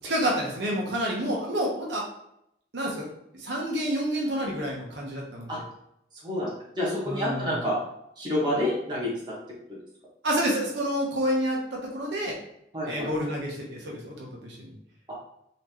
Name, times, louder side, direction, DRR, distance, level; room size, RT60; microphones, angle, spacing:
voice 1, 0.0-2.0 2.7-3.1 3.4-5.6 7.1-7.5 10.2-12.4 12.9-14.7, equal, 85° right, -2 dB, 1.0 m, -29 dB
voice 2, 6.7-7.8 8.2-9.1 9.7-9.8 12.7-13.3, left 1 dB, 25° right, -6 dB, 1.4 m, -28 dB
4.3 x 2.7 x 3.0 m, 0.76 s
head